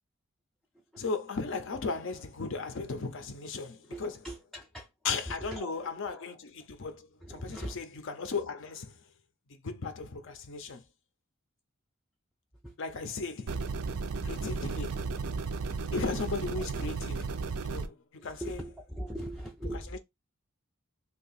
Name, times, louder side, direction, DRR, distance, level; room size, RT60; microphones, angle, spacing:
voice 1, 1.0-4.1 5.0-9.0 9.5-10.8 12.8-13.7 14.2-15.1 15.9-17.3 17.6-18.6, left 4 dB, 60° left, 0.5 m, -36 dB
voice 2, 3.8-4.9 5.3-6.3 7.2-7.8 12.6-12.8 16.6-16.9 18.2-20.0, right 1 dB, ahead, 0.3 m, -41 dB
sound 1, 13.5-17.9, right 4 dB, 85° right, 0.5 m, -34 dB
2.7 x 2.4 x 3.9 m
head